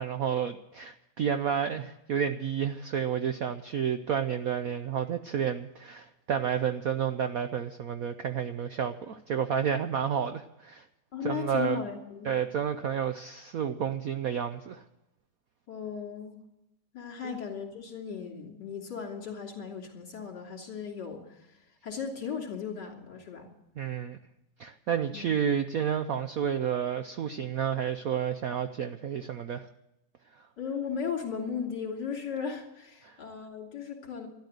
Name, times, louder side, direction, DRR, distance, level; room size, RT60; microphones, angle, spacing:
voice 1, 0.0-10.8 11.2-11.8 12.2-14.8 17.2-17.4 23.8-24.2 24.6-29.7 33.0-33.1, right 8 dB, 65° right, 9 dB, 0.9 m, -30 dB
voice 2, 11.1-12.3 15.7-16.4 16.9-21.6 21.8-23.5 25.1-25.3 30.6-34.3, left 6 dB, 55° left, -1 dB, 3.7 m, -36 dB
13.0 x 12.0 x 8.0 m, 0.89 s
omnidirectional pair, 2.3 m